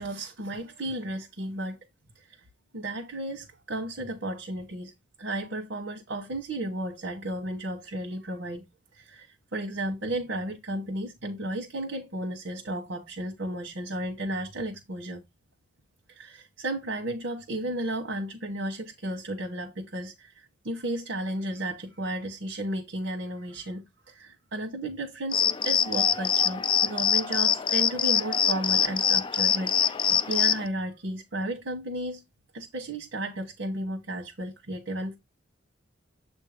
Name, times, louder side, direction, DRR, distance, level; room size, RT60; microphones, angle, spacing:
voice 1, 0.0-1.8 2.7-4.9 5.2-8.6 8.9-15.2 16.1-32.2 32.5-35.2, right 1 dB, 70° right, 1.2 m, -34 dB
sound 1, 25.3-30.7, left 7 dB, 25° left, 0.3 m, -24 dB
7.5 x 2.8 x 4.9 m
head